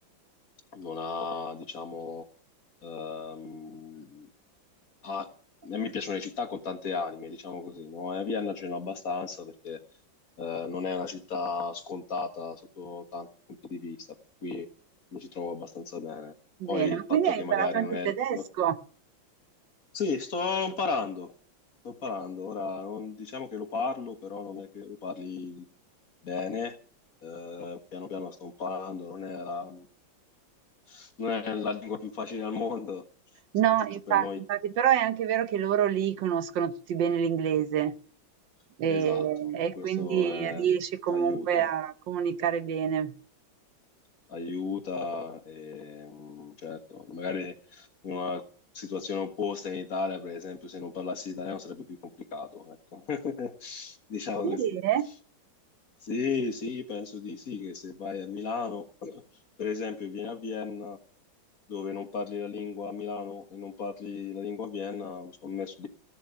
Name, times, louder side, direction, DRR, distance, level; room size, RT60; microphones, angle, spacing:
voice 1, 0.7-2.2 2.8-4.3 5.0-5.3 5.6-9.8 10.4-13.3 13.6-14.1 14.4-14.7 15.1-16.3 16.7-18.4 19.9-21.3 21.8-25.7 26.2-26.8 27.2-29.9 30.9-33.0 34.1-34.4 38.9-39.5 39.8-40.7 41.1-41.7 44.3-48.4 48.7-52.0 52.3-54.8 56.0-59.2 59.6-61.0 61.7-65.9, left 5 dB, 50° left, 1.8 m, -35 dB
voice 2, 16.6-18.7 33.5-37.9 38.8-43.1 54.4-55.1, right 9 dB, 70° right, 1.5 m, -27 dB
15.5 x 7.3 x 9.6 m
omnidirectional pair, 2.1 m